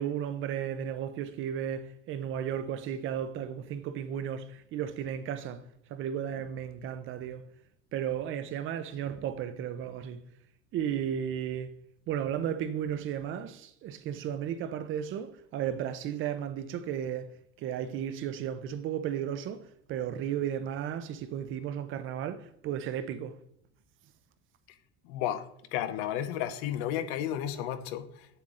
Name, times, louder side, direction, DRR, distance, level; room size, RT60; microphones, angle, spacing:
voice 1, 0.0-5.6 5.9-7.4 7.9-10.2 10.7-11.7 12.1-17.3 17.6-23.3, right 9 dB, 40° right, 0.6 m, -34 dB
voice 2, 25.1-28.1, left 11 dB, 90° left, 1.0 m, -32 dB
8.0 x 7.4 x 3.7 m
cardioid pair, 175°, 32 cm